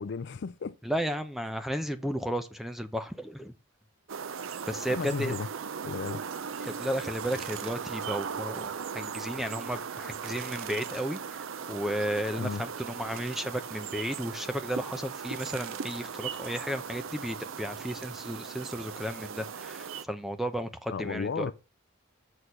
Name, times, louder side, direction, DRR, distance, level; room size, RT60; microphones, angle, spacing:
voice 1, 0.0-0.8 4.9-5.5 5.8-6.2 12.4-12.6 20.9-21.5, left 5 dB, 55° left, 0.4 m, -34 dB
voice 2, 0.8-3.5 4.7-5.3 6.6-8.7 8.9-21.5, equal, ahead, 0.7 m, -34 dB
sound 1, 4.1-20.0, right 6 dB, 65° right, 0.5 m, -38 dB
6.5 x 6.5 x 5.6 m
head